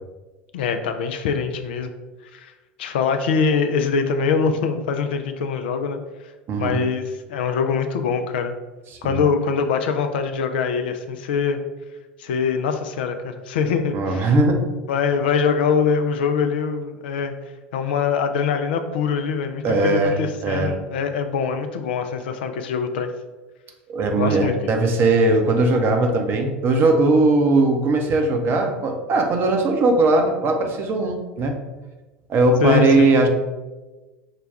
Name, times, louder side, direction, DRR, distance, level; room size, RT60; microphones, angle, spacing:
voice 1, 0.5-1.9 2.3-2.5 2.8-6.0 6.6-8.6 9.0-11.6 12.2-14.3 14.9-17.3 17.7-23.1 24.2-24.7 32.6-33.1, left 6 dB, 65° left, 7 dB, 0.4 m, -23 dB
voice 2, 6.5-6.8 9.0-9.2 13.9-14.6 19.6-20.2 20.4-20.7 23.9-31.6 32.3-33.3, right 2 dB, 40° right, 4 dB, 0.7 m, -19 dB
5.6 x 2.2 x 3.4 m, 1.2 s
figure-of-eight pair, 75°, 6 cm